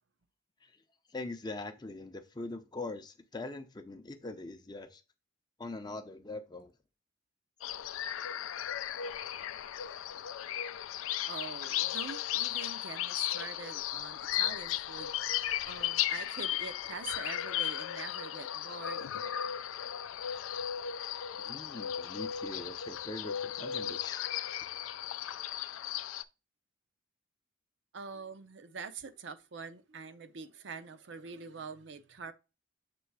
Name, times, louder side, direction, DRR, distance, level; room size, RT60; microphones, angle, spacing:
voice 1, 1.1-5.0 5.6-6.7 21.4-24.2, left 2 dB, 20° left, 0.5 m, -42 dB
sound 1, 7.6-26.2, left 11 dB, 85° left, 0.4 m, -36 dB
voice 2, 11.2-19.0 27.9-32.3, right 5 dB, 65° right, 0.5 m, -45 dB
6.8 x 3.1 x 4.6 m
head